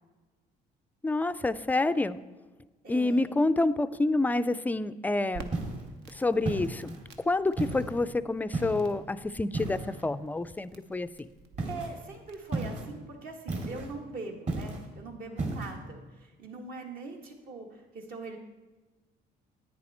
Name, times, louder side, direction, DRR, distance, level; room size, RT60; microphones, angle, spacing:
voice 1, 1.0-2.2 2.9-5.5 6.2-7.0 7.3-11.1, left 2 dB, 10° left, 13 dB, 0.3 m, -28 dB
voice 2, 2.8-3.3 11.7-18.4, right 3 dB, 60° right, 2 dB, 1.8 m, -42 dB
Crackle, 5.3-12.6, right 5 dB, 80° right, 1.0 m, -51 dB
sound 1, 5.5-5.9 6.5-7.0 7.6-8.0 8.5-9.0 9.5-10.1 11.6-11.9 12.5-12.9 13.5-13.9 14.5-14.9 15.4-15.7, right 3 dB, 45° right, 2.3 m, -34 dB
10.5 x 9.0 x 4.3 m, 1.2 s
cardioid pair, 110°, 17 cm